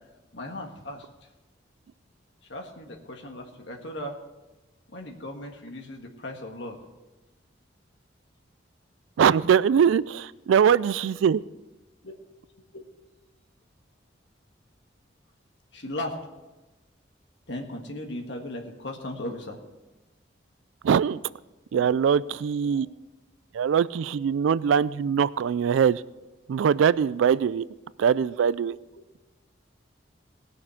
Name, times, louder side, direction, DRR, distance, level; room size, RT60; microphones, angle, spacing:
voice 1, 0.3-1.1 2.5-4.2 4.9-6.8 10.8-10.9 12.0-12.1 12.7-12.8 15.7-16.2 17.5-19.6 21.7-21.9 22.6-22.8, left 1 dB, 70° left, 2 dB, 1.6 m, -37 dB
voice 2, 9.2-11.4 20.8-21.2 21.7-22.9 23.5-26.0 26.5-27.6 28.0-28.8, right 7 dB, 85° right, 20 dB, 0.3 m, -22 dB
18.0 x 6.5 x 5.7 m, 1.1 s
head